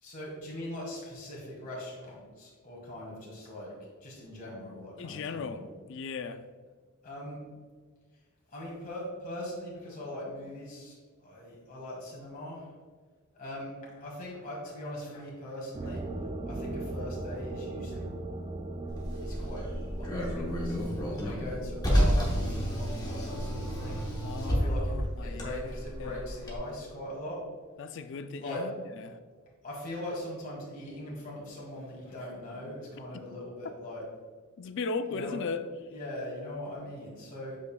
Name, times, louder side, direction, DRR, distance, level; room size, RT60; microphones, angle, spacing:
voice 1, 0.0-3.7 4.0-5.7 7.0-7.4 8.5-12.7 13.3-16.1 16.5-18.2 19.2-19.6 20.0-20.8 21.2-24.0 24.4-27.4 28.4-28.6 29.6-34.0 35.1-35.4 35.9-37.6, left 1 dB, 40° left, 1.7 m, -41 dB
voice 2, 5.0-6.4 24.2-26.2 27.8-29.2 33.1-33.2 34.6-35.7, left 4 dB, 55° left, 0.4 m, -37 dB
sound 1, 15.7-22.7, right 2 dB, 25° right, 0.3 m, -39 dB
Car, 18.9-26.6, equal, 20° left, 1.0 m, -30 dB
8.1 x 5.2 x 2.3 m
head